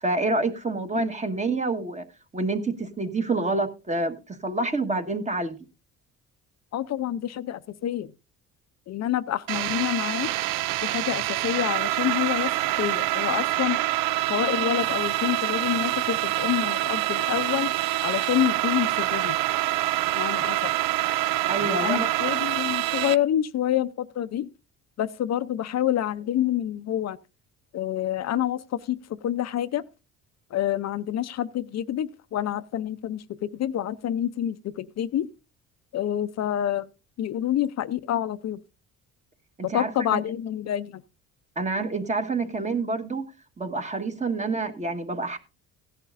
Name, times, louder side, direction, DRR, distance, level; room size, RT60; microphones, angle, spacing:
voice 1, 0.0-2.0 2.3-5.6 21.5-22.1 39.7-40.2 41.5-43.3 43.6-45.4, right 3 dB, 20° right, 1.4 m, -27 dB
voice 2, 6.7-8.1 8.9-10.3 10.8-12.5 12.8-13.8 14.3-17.7 18.0-19.4 20.1-20.7 21.6-24.5 25.0-27.2 27.7-29.8 30.5-35.3 35.9-36.9 37.2-38.6 39.6-41.0, left 11 dB, 55° left, 0.6 m, -27 dB
sound 1, 9.5-23.2, right 16 dB, 85° right, 0.5 m, -26 dB
16.0 x 10.5 x 2.5 m
cardioid pair, 120°, 32 cm